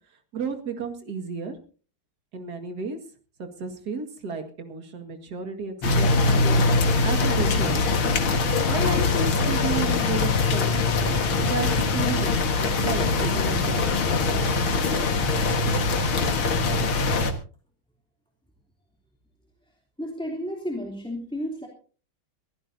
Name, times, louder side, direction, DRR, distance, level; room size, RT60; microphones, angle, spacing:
voice 1, 0.3-1.6 2.3-3.0 3.4-6.1 6.4-8.0 8.7-11.0 11.4-14.0 14.3-14.5, right 4 dB, 50° right, 5 dB, 2.4 m, -33 dB
sound 1, 5.8-17.3, left 3 dB, 80° left, 2.5 m, -22 dB
voice 2, 20.0-21.7, equal, ahead, 0 dB, 2.9 m, -32 dB
23.5 x 15.5 x 2.7 m, 0.39 s
omnidirectional pair, 2.3 m